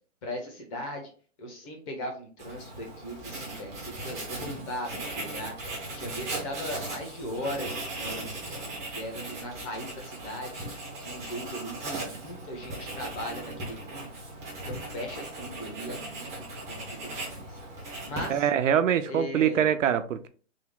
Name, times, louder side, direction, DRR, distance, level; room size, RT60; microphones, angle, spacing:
voice 1, 0.2-1.1 1.4-5.5 5.9-14.1 14.5-17.6 18.0-18.5 19.0-19.7, left 1 dB, 25° left, 0.9 m, -38 dB
Writing, 2.4-18.6, right 2 dB, 10° right, 0.5 m, -38 dB
voice 2, 18.3-20.3, right 9 dB, 80° right, 0.5 m, -24 dB
3.5 x 2.1 x 3.6 m
hypercardioid pair, 150°, 37 cm